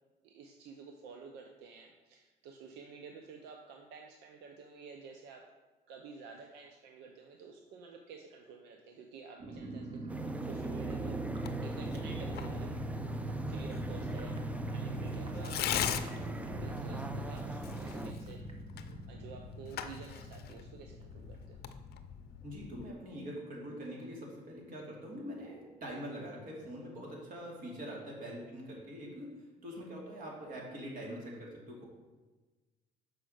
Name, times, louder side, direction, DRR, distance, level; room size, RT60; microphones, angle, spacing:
voice 1, 0.2-5.5 5.9-11.2 11.6-12.7 13.5-18.4 18.7-21.6, right 5 dB, 90° right, 3 dB, 0.7 m, -51 dB
sound 1, 9.4-21.8 22.0-22.1 22.4-22.7, right 2 dB, 35° right, 1.2 m, -41 dB
sound 2, 10.1-18.1, right 2 dB, 10° right, 0.4 m, -41 dB
Tearing, 11.3-22.9, left 9 dB, 70° left, 0.6 m, -42 dB
voice 2, 22.4-29.3 29.6-31.8, equal, 55° right, -2 dB, 2.6 m, -44 dB
6.3 x 4.9 x 6.3 m, 1.2 s
cardioid pair, 110°, 17 cm